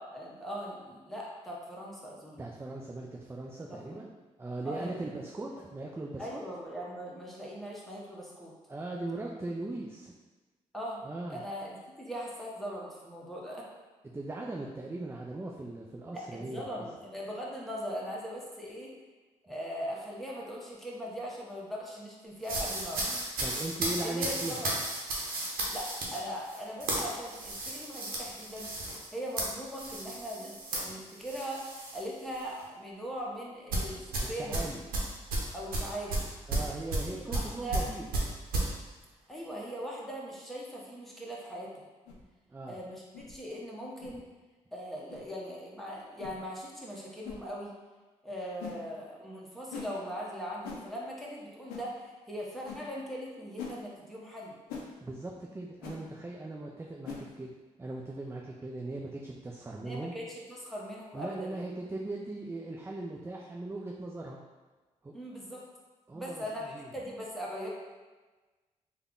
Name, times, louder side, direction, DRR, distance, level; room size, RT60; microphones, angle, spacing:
voice 1, 0.0-2.4 3.7-4.1 4.6-5.1 6.2-8.5 10.7-11.0 11.3-13.7 16.1-18.9 19.5-23.1 24.0-24.7 25.5-28.7 29.1-34.8 35.5-36.3 37.0-37.9 39.3-41.9 42.7-43.0 43.3-44.2 44.7-47.7 48.2-54.6 59.8-61.7 65.1-65.6 66.1-67.7, equal, ahead, -4 dB, 1.1 m, -40 dB
voice 2, 2.4-4.1 4.4-6.4 8.7-10.1 11.0-11.4 14.1-16.8 19.5-19.6 23.1-24.6 34.2-34.8 36.5-38.1 42.5-42.8 55.0-57.5 57.8-60.1 61.1-64.4 65.0-65.1 66.1-66.9, right 2 dB, 15° right, -1 dB, 0.4 m, -39 dB
sound 1, 22.4-32.0 32.4-32.6 33.7-38.7, right 2 dB, 75° right, 0.8 m, -34 dB
sound 2, 42.0-42.2 43.1-43.3 44.0-44.2 45.1-45.2 46.2-46.4 47.2-47.4 48.6-48.8 49.7-49.9 50.6-50.8 51.7-51.9 52.6-52.8 53.6-53.8 54.7-54.9 55.8-56.0 57.0-57.2, left 6 dB, 90° left, 0.5 m, -42 dB
3.5 x 2.3 x 3.7 m, 1.2 s
hypercardioid pair, 45°, 15 cm